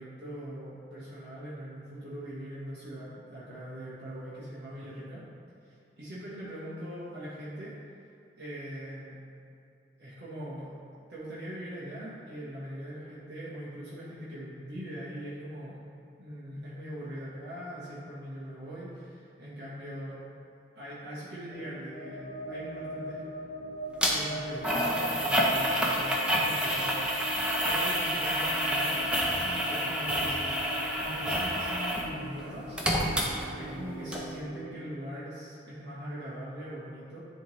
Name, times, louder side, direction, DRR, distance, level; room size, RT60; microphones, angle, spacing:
voice 1, 0.0-5.2 5.6-7.7 8.4-9.2 10.0-10.7 11.1-15.8 16.2-20.2 20.7-22.2 22.5-23.2 24.1-27.2 27.6-32.8 33.6-37.2, equal, 70° right, -10 dB, 1.3 m, -41 dB
sound 1, 21.5-34.7, right 1 dB, 55° left, 1.1 m, -42 dB
sound 2, 24.0-24.1 24.6-32.1 32.4-33.8 34.1-34.2, equal, 5° right, 0.6 m, -28 dB
10.5 x 3.5 x 3.2 m, 2.5 s
head